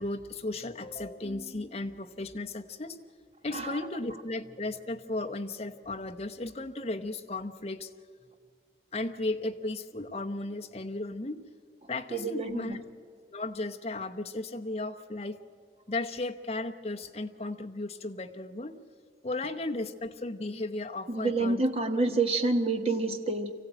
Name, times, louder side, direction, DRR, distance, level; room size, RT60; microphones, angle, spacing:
voice 1, 0.0-3.0 3.4-7.9 8.9-11.4 11.9-12.8 13.3-15.4 15.9-18.7 19.2-21.6, left 2 dB, 35° left, 5 dB, 0.9 m, -35 dB
voice 2, 12.1-12.8 21.1-23.5, right 3 dB, 30° right, 6 dB, 1.3 m, -28 dB
24.5 x 15.5 x 9.0 m, 2.1 s
head